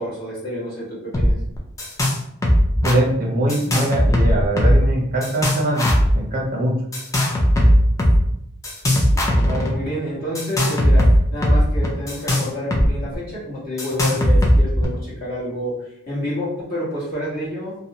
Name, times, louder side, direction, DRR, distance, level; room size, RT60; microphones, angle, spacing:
voice 1, 0.0-1.3 9.4-17.7, equal, 40° left, -8 dB, 1.2 m, -28 dB
sound 1, 1.1-1.3 1.6-2.2 2.4-3.0 3.5-4.9 5.2-6.1 6.9-8.2 8.6-9.7 10.3-12.9 13.1-13.2 13.8-14.8, equal, 15° left, 0.3 m, -17 dB
voice 2, 2.8-6.8, right 1 dB, 40° right, -1 dB, 0.5 m, -22 dB
2.5 x 2.0 x 2.8 m, 0.74 s
head